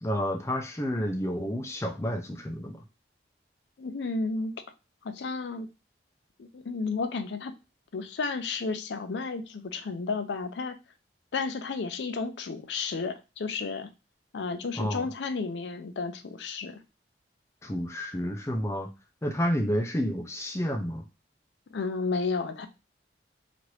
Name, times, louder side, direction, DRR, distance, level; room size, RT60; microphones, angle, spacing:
voice 1, 0.0-2.8 14.8-15.1 17.6-18.9 19.2-21.0, equal, 15° left, 5 dB, 0.4 m, -30 dB
voice 2, 3.8-4.5 5.0-5.7 6.4-7.5 7.9-10.7 11.3-13.9 14.3-16.8 21.7-22.7, left 4 dB, 75° left, 9 dB, 0.4 m, -32 dB
2.9 x 2.5 x 3.1 m, 0.28 s
head